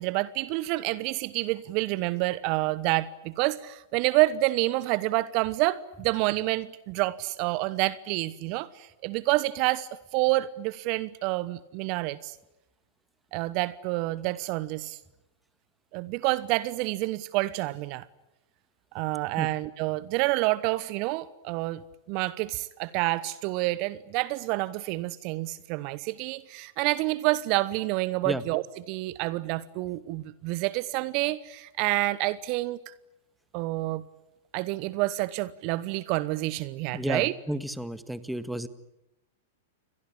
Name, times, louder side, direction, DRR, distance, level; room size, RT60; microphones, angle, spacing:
voice 1, 0.0-12.4 13.3-15.0 15.9-18.1 18.9-21.8 22.1-32.9 33.5-34.0 34.5-37.3, right 19 dB, 45° right, 1.0 m, -28 dB
voice 2, 36.9-38.7, right 1 dB, 5° right, 1.8 m, -32 dB
29.5 x 23.0 x 8.7 m
figure-of-eight pair, 100°, 0 cm